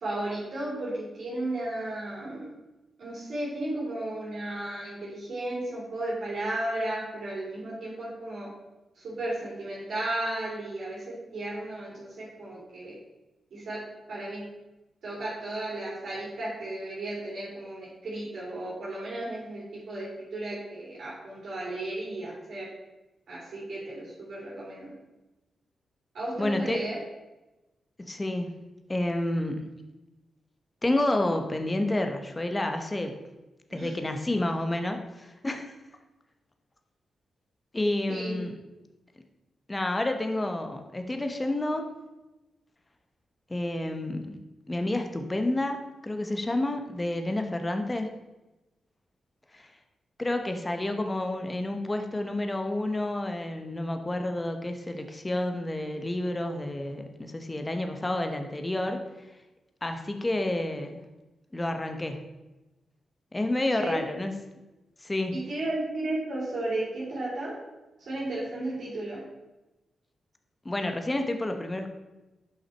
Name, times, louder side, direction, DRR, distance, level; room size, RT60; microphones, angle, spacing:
voice 1, 0.0-2.5 3.0-8.5 8.9-12.9 13.5-13.8 14.1-14.4 15.0-22.7 23.3-24.9 26.1-27.0 33.7-33.9 38.1-38.5 63.7-64.0 65.3-67.6 68.0-69.2, right 1 dB, 70° right, -6 dB, 2.7 m, -34 dB
voice 2, 26.4-26.8 28.0-28.5 28.9-29.8 30.8-33.2 33.7-35.7 37.7-38.6 39.7-41.9 43.5-44.4 44.7-48.1 49.5-49.7 50.2-59.3 59.8-61.1 61.5-62.2 63.3-64.3 65.0-65.3 70.6-71.9, left 1 dB, 25° left, 5 dB, 0.9 m, -30 dB
6.0 x 5.6 x 4.5 m, 1.0 s
cardioid pair, 60°, 0 cm